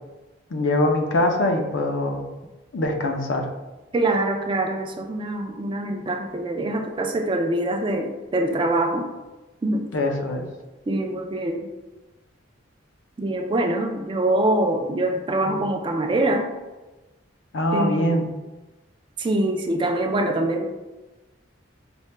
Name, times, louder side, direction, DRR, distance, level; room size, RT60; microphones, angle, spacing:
voice 1, 0.5-2.3 2.7-3.5 9.9-10.5 15.5-15.6 17.5-18.2, left 1 dB, 70° left, 3 dB, 0.5 m, -23 dB
voice 2, 3.9-9.1 9.6-9.9 10.9-11.7 13.2-16.5 17.7-18.1 19.2-20.8, right 1 dB, 25° right, 3 dB, 0.3 m, -24 dB
4.2 x 2.1 x 3.2 m, 1.1 s
head